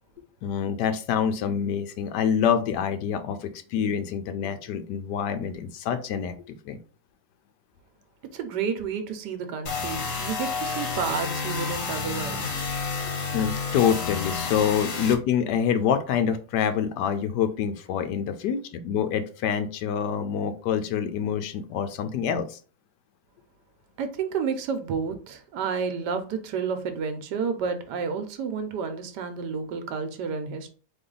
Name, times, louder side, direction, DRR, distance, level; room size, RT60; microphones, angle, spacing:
voice 1, 0.4-6.3 6.6-6.8 13.3-22.6, left 8 dB, 85° left, 1.2 m, -26 dB
voice 2, 8.3-12.6 24.0-30.7, right 6 dB, 85° right, 1.3 m, -30 dB
sound 1, 9.7-15.1, left 4 dB, 55° left, 1.3 m, -30 dB
4.0 x 3.1 x 3.8 m
omnidirectional pair, 1.8 m